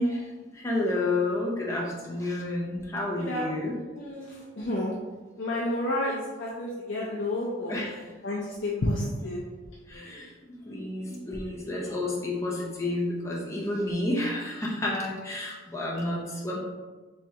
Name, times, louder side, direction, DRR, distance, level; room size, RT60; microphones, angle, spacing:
voice 1, 0.0-3.8 7.7-8.0 9.9-10.3 10.6-16.6, left 1 dB, 15° left, -4 dB, 0.6 m, -30 dB
voice 2, 3.7-4.9 5.4-7.8 8.2-9.4, left 1 dB, 60° left, -5 dB, 0.5 m, -30 dB
3.4 x 3.2 x 2.8 m, 1.3 s
head